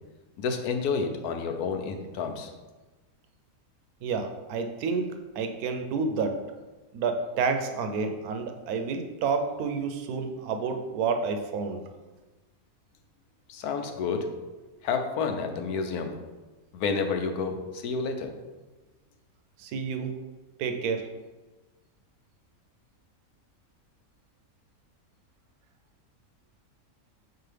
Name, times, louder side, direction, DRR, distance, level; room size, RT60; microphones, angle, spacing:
voice 1, 0.4-2.5 13.5-14.2 14.8-16.1 16.7-18.3, left 5 dB, 90° left, 5 dB, 1.2 m, -29 dB
voice 2, 4.0-6.4 6.9-11.8 19.6-20.1 20.6-21.1, right 5 dB, 80° right, 6 dB, 1.1 m, -29 dB
6.1 x 4.6 x 3.3 m, 1.2 s
omnidirectional pair, 1.6 m